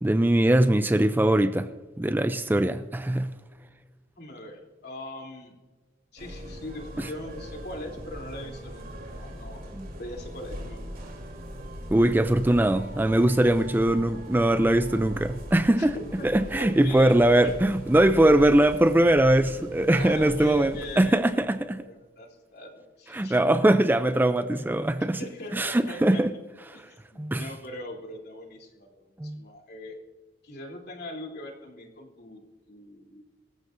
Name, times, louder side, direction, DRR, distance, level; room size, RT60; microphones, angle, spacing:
voice 1, 0.0-1.7 2.0-3.3 7.0-7.1 9.7-9.9 11.9-21.8 23.1-25.2 25.5-26.3 27.2-27.5 29.2-29.4, right 1 dB, 10° right, 0.4 m, -21 dB
voice 2, 4.2-5.6 6.1-9.6 10.0-10.9 15.7-17.4 20.0-21.4 21.6-23.4 25.0-26.2 26.7-30.0 30.4-33.2, left 1 dB, 55° left, 3.3 m, -41 dB
sound 1, 6.2-21.0, equal, 50° right, 3.3 m, -40 dB
25.0 x 14.5 x 2.6 m
head